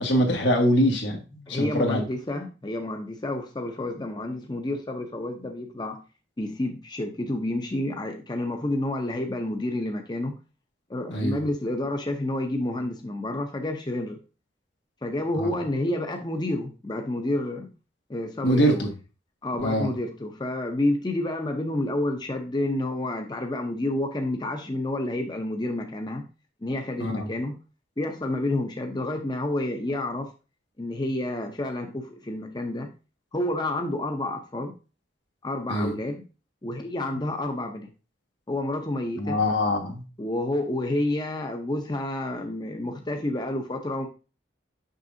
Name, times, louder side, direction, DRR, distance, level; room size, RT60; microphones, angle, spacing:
voice 1, 0.0-2.0 11.1-11.4 15.4-15.5 18.4-18.9 19.6-19.9 27.0-27.3 35.7-35.9 39.2-40.0, equal, 85° left, 3 dB, 1.6 m, -23 dB
voice 2, 1.5-6.0 6.4-10.3 10.9-14.2 15.0-17.7 18.1-18.9 19.4-26.2 26.6-27.6 28.0-30.3 30.8-32.9 33.3-34.7 35.4-36.2 36.6-37.9 38.5-39.4 40.2-44.1, left 1 dB, 25° left, 4 dB, 0.7 m, -29 dB
6.3 x 6.0 x 2.7 m, 0.32 s
head